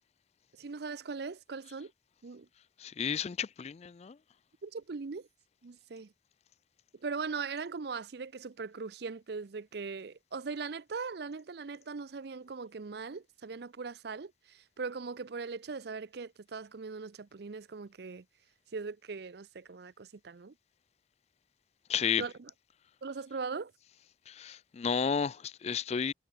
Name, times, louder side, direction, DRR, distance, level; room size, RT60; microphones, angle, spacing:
voice 1, 0.5-1.9 2.2-2.5 4.6-5.3 5.6-6.1 6.9-18.2 18.7-20.5 22.2-22.5 23.0-23.7, right 4 dB, 60° right, 0.6 m, -40 dB
voice 2, 2.8-4.1 21.9-22.2 24.3-26.1, left 6 dB, 35° left, 0.4 m, -32 dB
head